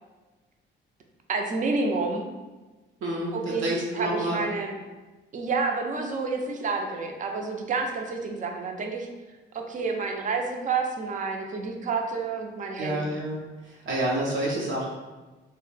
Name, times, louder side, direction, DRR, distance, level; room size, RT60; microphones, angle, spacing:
voice 1, 1.3-2.3 3.3-4.7 5.3-9.1 9.5-13.1, right 4 dB, 40° right, 3 dB, 0.5 m, -29 dB
voice 2, 3.0-4.4 12.8-13.4 13.6-14.9, right 1 dB, 85° right, -4 dB, 0.7 m, -28 dB
2.5 x 2.1 x 3.9 m, 1.2 s
cardioid pair, 90°, 20 cm